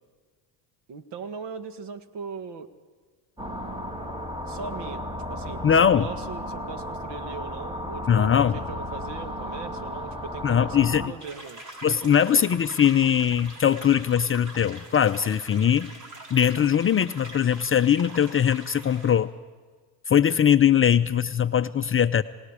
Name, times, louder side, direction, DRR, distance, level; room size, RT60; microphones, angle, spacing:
voice 1, 0.9-2.7 4.5-5.0 5.3-12.1, right 5 dB, 60° right, 10 dB, 1.9 m, -39 dB
sound 1, 3.4-11.1, left 1 dB, 10° right, 2.2 m, -34 dB
voice 2, 5.6-6.1 8.1-8.6 10.4-11.1 11.8-15.9 16.3-19.3 20.1-22.2, left 8 dB, 30° left, 10 dB, 0.5 m, -21 dB
sound 2, 11.2-19.1, right 1 dB, 40° right, 6.1 m, -44 dB
28.0 x 18.5 x 4.9 m, 1.5 s
cardioid pair, 100°, 47 cm